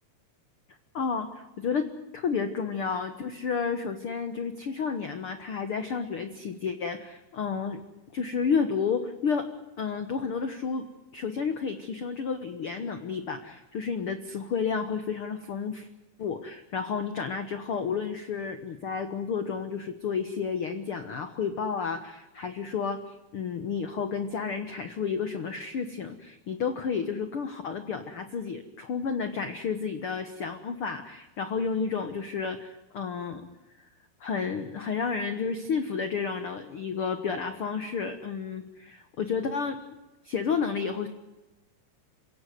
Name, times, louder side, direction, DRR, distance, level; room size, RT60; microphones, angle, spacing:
voice 1, 0.7-1.9 2.1-7.8 8.1-9.5 9.8-10.9 11.1-15.9 16.2-33.5 34.2-39.8 40.2-41.1, left 5 dB, 80° left, 9 dB, 1.2 m, -31 dB
28.0 x 17.0 x 9.5 m, 1.0 s
omnidirectional pair, 4.6 m